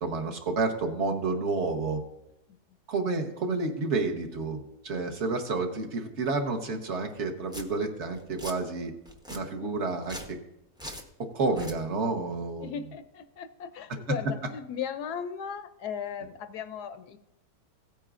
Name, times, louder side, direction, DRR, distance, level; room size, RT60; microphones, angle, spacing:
voice 1, 0.0-2.0 2.9-8.9 9.3-10.4 11.2-12.7, right 3 dB, 45° right, 4 dB, 1.3 m, -30 dB
Domestic sounds home sounds, 7.1-7.2 7.5-7.6 8.1-8.6 9.1-9.4 10.0-10.3 10.8-11.1 11.5-11.8, equal, 5° right, 0.3 m, -41 dB
voice 2, 12.6-17.2, left 7 dB, 70° left, 9 dB, 1.0 m, -37 dB
16.5 x 9.0 x 2.5 m, 0.90 s
omnidirectional pair, 1.9 m